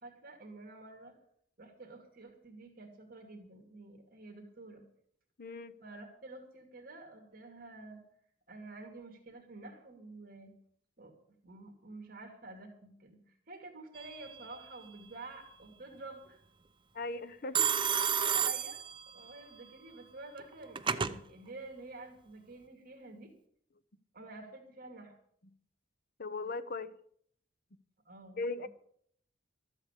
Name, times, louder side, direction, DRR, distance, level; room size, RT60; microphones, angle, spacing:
voice 1, 0.0-1.1 1.6-4.8 5.8-8.0 8.5-10.5 11.0-11.1 11.4-16.4 17.4-17.6 17.9-18.8 19.1-23.3 24.1-25.2 28.0-28.7, right 2 dB, 50° right, 2.5 m, -49 dB
voice 2, 5.4-5.7 16.9-17.7 26.2-26.9 28.4-28.7, left 3 dB, 50° left, 0.8 m, -38 dB
Telephone, 13.9-14.5 17.5-19.4 20.4-21.2, right 8 dB, 25° right, 0.6 m, -31 dB
13.5 x 8.1 x 8.3 m
head